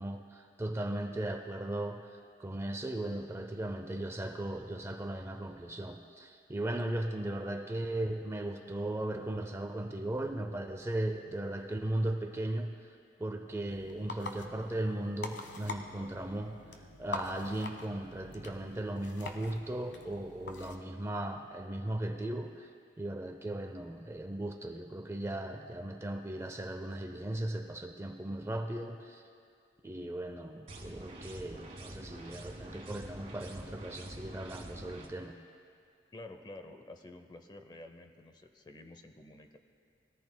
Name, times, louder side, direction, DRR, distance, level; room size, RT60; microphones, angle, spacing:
voice 1, 0.0-16.6 17.0-22.7 23.0-29.2 29.8-35.4, right 1 dB, 15° right, 6 dB, 0.5 m, -37 dB
sound 1, 13.7-20.8, left 3 dB, 80° left, 1.1 m, -45 dB
sound 2, 30.7-35.1, right 1 dB, 35° right, 1.7 m, -46 dB
voice 2, 36.1-39.6, left 2 dB, 25° left, 6 dB, 0.6 m, -50 dB
20.5 x 14.0 x 2.2 m, 2.3 s
head